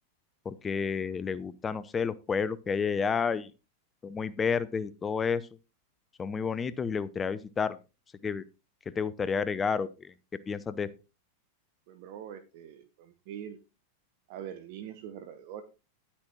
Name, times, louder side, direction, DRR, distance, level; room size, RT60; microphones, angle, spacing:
voice 1, 0.5-3.5 4.0-5.4 6.2-7.8 8.2-8.4 8.9-10.1 10.5-10.9, left 6 dB, 20° left, 16 dB, 0.5 m, -30 dB
voice 2, 11.9-13.6 14.3-15.6, right 9 dB, 50° right, 10 dB, 0.9 m, -43 dB
10.5 x 8.6 x 3.0 m, 0.30 s
figure-of-eight pair, 90°, 0 cm